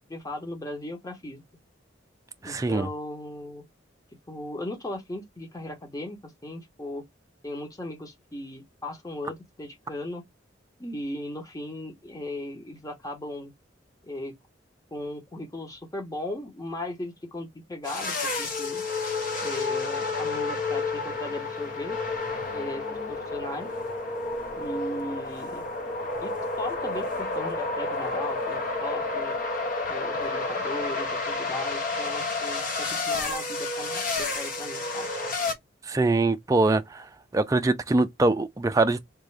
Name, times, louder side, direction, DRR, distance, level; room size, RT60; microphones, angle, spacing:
voice 1, 0.1-1.4 2.4-3.6 4.3-7.0 7.4-10.2 10.8-13.5 14.0-14.3 14.9-18.8 19.4-22.0 22.5-23.7 24.5-25.6 26.2-29.4 29.9-35.1, left 1 dB, 20° left, 0.9 m, -37 dB
voice 2, 2.4-2.9 35.9-37.1 37.3-39.0, right 2 dB, 15° right, 0.4 m, -23 dB
sound 1, 17.8-35.5, left 3 dB, 45° left, 0.8 m, -30 dB
3.5 x 2.6 x 3.2 m
head